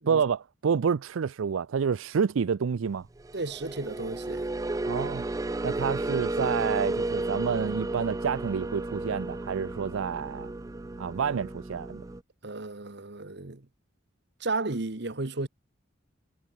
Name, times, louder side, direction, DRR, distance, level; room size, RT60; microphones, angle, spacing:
voice 1, 0.1-3.1 4.8-5.2 5.6-10.5 11.0-12.0, right 6 dB, 90° right, 0.4 m, -28 dB
sound 1, 3.2-12.2, right 2 dB, 15° right, 0.4 m, -33 dB
voice 2, 3.3-4.5 12.4-13.7 14.4-15.5, right 3 dB, 55° right, 1.4 m, -33 dB
head